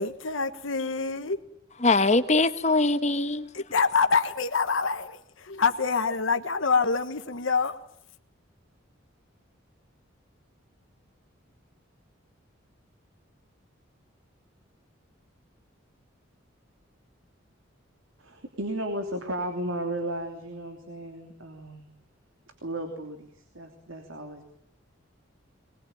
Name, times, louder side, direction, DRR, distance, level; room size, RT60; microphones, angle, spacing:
voice 1, 0.0-1.4 3.5-7.8, left 5 dB, 80° left, 1.4 m, -26 dB
voice 2, 1.8-3.5, left 3 dB, 35° left, 1.3 m, -22 dB
voice 3, 18.2-21.9 22.6-24.5, right 1 dB, 85° right, 3.1 m, -34 dB
21.5 x 21.5 x 9.1 m
head